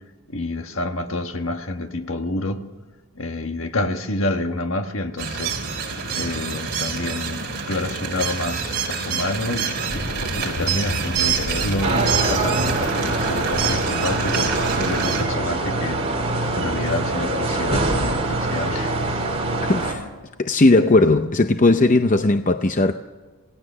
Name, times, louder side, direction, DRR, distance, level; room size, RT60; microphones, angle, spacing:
voice 1, 0.3-2.6 3.1-5.6 6.1-9.7 10.4-16.0 16.5-19.2, left 2 dB, 60° left, 1.5 m, -28 dB
sound 1, 5.2-15.2, right 6 dB, 45° right, 3.7 m, -27 dB
sound 2, 9.9-15.6, left 1 dB, 85° left, 2.5 m, -33 dB
sound 3, 11.8-19.9, right 2 dB, 25° right, 3.3 m, -24 dB
voice 2, 19.7-20.1 20.4-22.9, left 2 dB, 35° left, 0.6 m, -17 dB
27.5 x 17.5 x 6.8 m
head